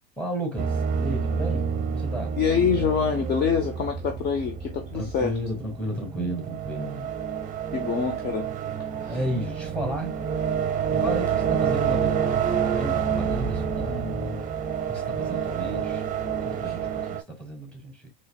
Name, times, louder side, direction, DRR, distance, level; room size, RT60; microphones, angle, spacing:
voice 1, 0.2-2.4 4.9-7.1 9.1-10.1 10.9-12.4 12.7-14.4 14.9-16.0 16.4-18.1, right 1 dB, 5° left, 1.9 m, -33 dB
sound 1, 0.6-17.2, right 7 dB, 30° right, 0.7 m, -28 dB
voice 2, 2.4-5.4 7.7-8.5 9.1-9.2 16.7-16.8, left 6 dB, 35° left, 0.7 m, -25 dB
4.0 x 3.1 x 2.2 m
hypercardioid pair, 100°, 29 cm